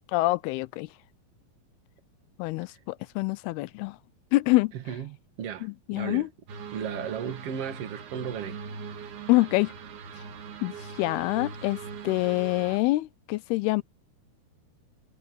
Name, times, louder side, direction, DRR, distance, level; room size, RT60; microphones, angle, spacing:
voice 1, 0.1-0.9 2.4-4.0 4.3-4.7 5.6-6.3 9.3-9.7 10.6-13.8, left 20 dB, 85° left, 2.6 m, -26 dB
voice 2, 4.7-6.3 6.7-8.6, right 8 dB, 45° right, 2.4 m, -35 dB
sound 1, 6.5-12.8, right 5 dB, 75° right, 4.1 m, -41 dB
omnidirectional pair, 4.5 m